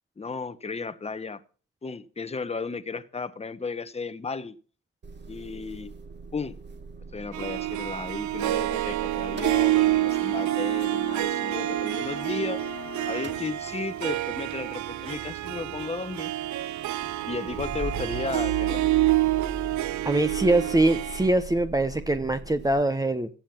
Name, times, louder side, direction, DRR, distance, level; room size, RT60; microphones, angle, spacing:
voice 1, 0.2-1.4 1.8-4.6 5.3-5.9 6.3-6.6 7.1-12.6 13.1-16.3 17.2-18.8, left 4 dB, 20° left, 13 dB, 1.1 m, -34 dB
Motor vehicle (road) / Engine starting / Idling, 5.0-12.7 13.0-22.8, right 3 dB, 35° right, 2.2 m, -41 dB
Harp, 7.3-21.3, right 16 dB, 70° right, 0.8 m, -28 dB
Wind instrument woodwind instrument, 9.6-13.6, left 14 dB, 90° left, 2.0 m, -42 dB
voice 2, 20.0-23.3, right 2 dB, 10° right, 10 dB, 1.0 m, -23 dB
15.5 x 9.0 x 5.9 m, 0.39 s
cardioid pair, 90°, 30 cm